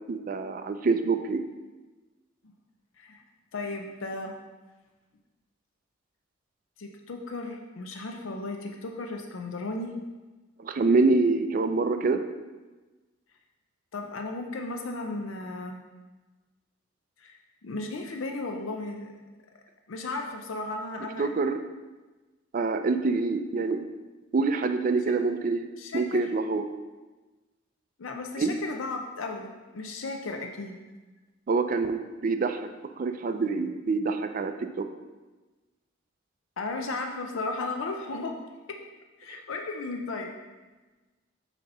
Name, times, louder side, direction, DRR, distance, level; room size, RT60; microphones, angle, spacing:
voice 1, 0.1-1.4 10.6-12.2 21.2-21.6 22.5-23.8 24.3-25.7 25.9-26.7 28.4-28.6 31.5-32.7 33.0-34.9, right 3 dB, 45° right, 8 dB, 0.4 m, -26 dB
voice 2, 3.5-4.3 6.8-9.9 13.9-15.8 17.2-19.2 19.9-21.3 25.8-26.2 28.0-30.8 36.6-38.3 38.7-38.8 39.2-40.3, left 3 dB, 85° left, 3 dB, 0.6 m, -35 dB
7.0 x 2.9 x 5.4 m, 1.2 s
head